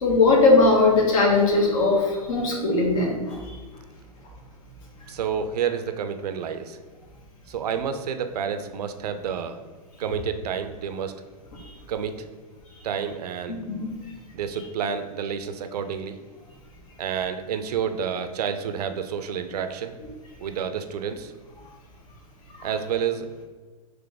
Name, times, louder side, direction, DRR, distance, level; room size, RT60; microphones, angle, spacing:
voice 1, 0.0-3.6 5.0-5.1 13.7-13.9 22.6-22.7, left 3 dB, 60° left, -1 dB, 1.0 m, -20 dB
voice 2, 5.1-6.8 7.5-9.6 10.0-11.1 11.9-12.3 12.8-13.6 14.3-16.2 17.0-20.0 20.4-21.3 22.6-23.3, right 7 dB, 85° right, 8 dB, 0.4 m, -29 dB
3.8 x 3.0 x 3.5 m, 1.4 s
hypercardioid pair, 140°, 20 cm